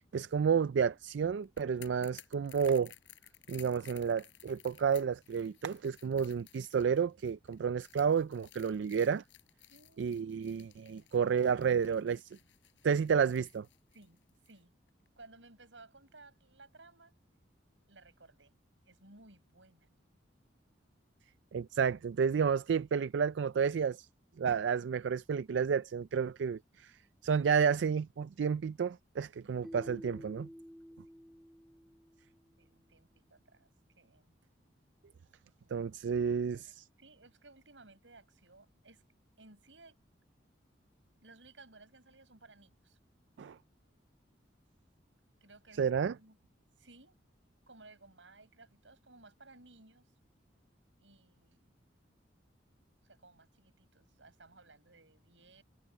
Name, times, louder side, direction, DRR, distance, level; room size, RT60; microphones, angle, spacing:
voice 1, 0.0-2.9 3.5-9.2 10.0-12.3 12.8-13.7 21.5-24.1 24.4-27.0 27.2-30.5 35.7-36.8 43.4-43.6 45.8-46.2, right 6 dB, 70° right, 0.4 m, -31 dB
sound 1, 1.4-14.6 14.9-15.1, left 12 dB, 80° left, 5.9 m, -58 dB
voice 2, 9.7-10.4 11.0-11.1 13.9-14.2 14.5-14.7 15.2-17.1 17.9-18.5 18.9-19.9 29.4-29.5 32.6-33.7 34.0-34.4 35.6-36.7 37.0-39.0 39.4-40.0 41.2-43.0 45.4-46.4 46.8-47.2 47.7-50.1 51.0-51.8 53.0-55.6, right 3 dB, 90° right, 6.9 m, -59 dB
Keyboard (musical), 29.6-32.5, equal, ahead, 1.7 m, -50 dB
head